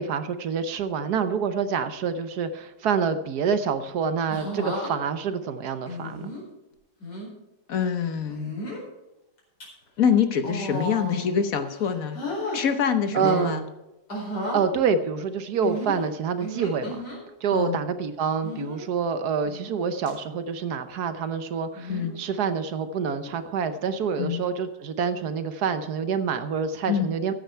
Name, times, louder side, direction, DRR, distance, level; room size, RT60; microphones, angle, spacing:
voice 1, 0.0-6.3 13.1-13.7 14.5-17.0 17.4-27.3, right 6 dB, 70° right, 10 dB, 1.4 m, -27 dB
sound 1, 4.3-4.9 5.9-6.4 7.0-7.3 8.3-8.8 9.4-9.6 10.4-11.3 11.6-12.6 13.0-13.5 14.1-14.6 15.6-17.2 18.4-18.8 19.4-19.8 20.1-20.2 21.7-22.1 23.2-23.5, equal, 75° left, 5.4 m, -34 dB
voice 2, 7.7-8.7 10.0-12.2 12.5-13.6 17.5-17.8 21.9-22.2 24.2-24.4 26.9-27.1, left 7 dB, 60° left, 9 dB, 1.3 m, -25 dB
14.0 x 9.3 x 4.5 m, 0.97 s
omnidirectional pair, 1.8 m